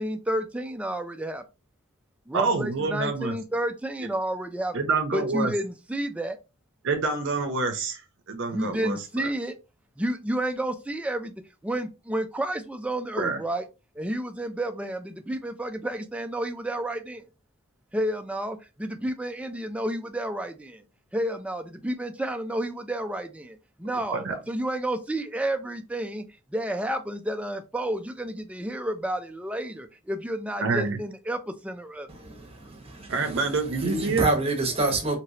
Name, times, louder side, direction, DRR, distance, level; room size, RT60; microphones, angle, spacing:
voice 1, 0.0-1.4 2.3-4.7 5.1-6.4 8.5-9.6 10.0-11.3 11.6-13.6 14.0-17.2 17.9-20.8 21.1-26.2 26.5-32.1, right 1 dB, 5° right, 0.3 m, -31 dB
voice 2, 2.3-3.4 4.7-5.5 6.8-9.3 13.2-13.4 24.1-24.4 30.6-31.0 33.1-34.3, right 4 dB, 55° right, 0.6 m, -27 dB
voice 3, 32.1-33.4 33.8-35.2, right 2 dB, 25° right, 0.9 m, -27 dB
3.1 x 2.8 x 2.7 m
head